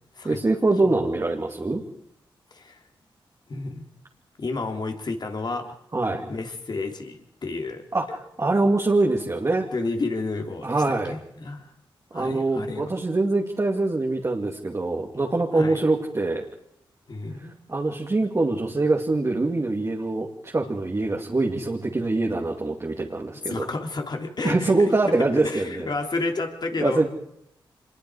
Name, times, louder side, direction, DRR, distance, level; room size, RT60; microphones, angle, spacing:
voice 1, 0.2-1.8 5.9-6.3 7.9-9.6 10.6-11.2 12.1-16.5 17.7-23.7 24.4-25.9 26.8-27.1, right 2 dB, 35° right, 0 dB, 2.5 m, -24 dB
voice 2, 2.5-2.8 3.5-3.8 4.4-5.7 6.3-7.8 9.7-11.7 12.1-12.9 15.5-15.8 17.1-17.5 23.5-24.9 25.2-27.1, left 3 dB, 50° left, 4 dB, 3.2 m, -31 dB
25.5 x 21.0 x 4.8 m, 0.75 s
cardioid pair, 60°, 9 cm